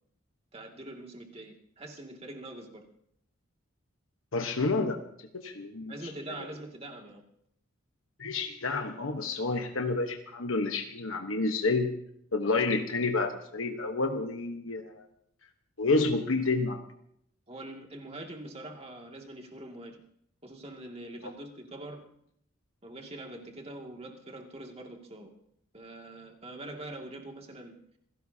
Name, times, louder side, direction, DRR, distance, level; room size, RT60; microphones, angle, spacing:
voice 1, 0.5-2.9 5.9-7.2 17.5-20.0 20.4-22.1 22.8-25.3 25.7-27.7, right 1 dB, 30° right, 1 dB, 2.3 m, -44 dB
voice 2, 4.3-5.0 5.3-5.9 8.2-11.9 12.3-15.0 15.8-16.8, left 3 dB, 70° left, 5 dB, 1.2 m, -29 dB
27.0 x 17.0 x 2.8 m, 0.72 s
head